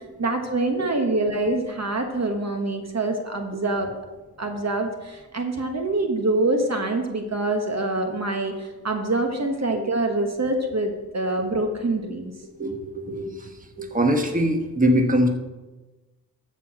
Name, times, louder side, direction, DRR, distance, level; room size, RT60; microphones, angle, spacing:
voice 1, 0.2-3.9 4.4-12.3, right 2 dB, 45° right, 4 dB, 1.2 m, -25 dB
voice 2, 12.6-15.3, equal, 20° right, 4 dB, 1.3 m, -23 dB
13.5 x 4.6 x 6.2 m, 1.2 s
cardioid pair, 60°, 38 cm